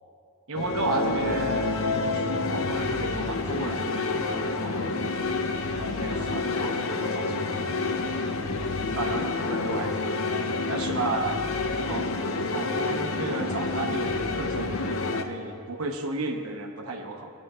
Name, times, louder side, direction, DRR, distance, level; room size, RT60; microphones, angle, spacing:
voice 1, 0.5-1.7 2.0-5.1 5.8-8.1 8.9-10.0 10.7-11.4 11.9-12.2 12.5-17.3, right 3 dB, 80° right, 3 dB, 0.9 m, -33 dB
sound 1, 0.6-15.2, left 3 dB, 75° left, 0.7 m, -28 dB
18.0 x 9.3 x 2.4 m, 2.5 s
head